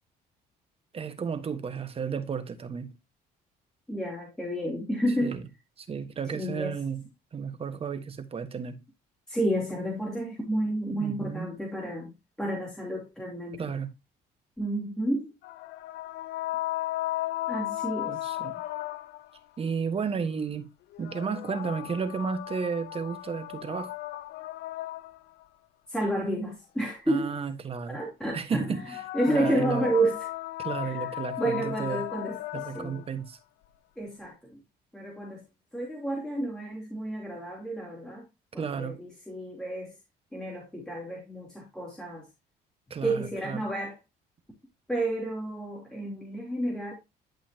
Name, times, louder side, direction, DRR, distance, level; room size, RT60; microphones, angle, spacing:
voice 1, 0.9-2.9 5.2-5.4 5.8-7.0 7.3-8.8 10.9-11.5 13.6-13.9 18.1-18.5 19.6-20.7 21.0-23.9 27.1-28.0 28.3-29.0 29.3-29.9 30.6-32.0 32.5-33.4 38.6-39.0 42.9-43.6, right 6 dB, 35° right, 1.4 m, -33 dB
voice 2, 3.9-5.4 6.3-6.8 9.3-12.1 12.4-13.7 14.6-15.3 17.5-18.3 25.9-27.3 27.9-28.8 29.1-30.3 30.8-33.0 34.0-34.6 34.9-35.4 35.7-38.2 38.5-39.9 40.3-42.3 43.0-44.0 44.9-46.9, right 1 dB, 5° left, 2.9 m, -31 dB
sound 1, 15.4-19.4 20.9-25.4 28.6-33.1, left 16 dB, 75° left, 0.8 m, -35 dB
11.5 x 5.6 x 2.8 m
cardioid pair, 110°, 17 cm